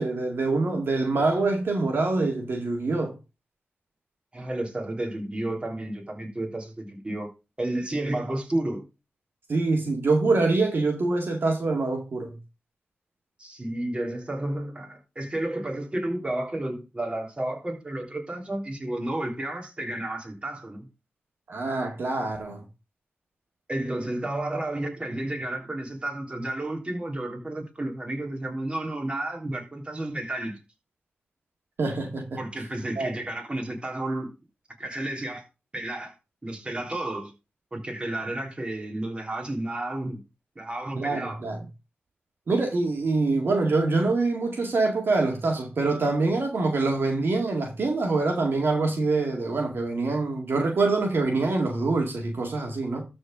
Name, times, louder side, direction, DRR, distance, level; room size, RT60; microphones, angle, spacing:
voice 1, 0.0-3.1 9.5-12.4 21.5-22.6 31.8-32.3 33.0-33.1 41.0-41.6 42.5-53.0, right 3 dB, 65° right, 2.1 m, -25 dB
voice 2, 4.3-7.3 7.6-8.8 13.4-20.9 23.7-30.6 32.4-34.3 34.8-35.4 35.7-36.1 36.4-37.3 37.7-40.2 40.6-41.4, right 1 dB, 25° right, 3.4 m, -31 dB
13.0 x 4.5 x 5.1 m
cardioid pair, 65°, 4 cm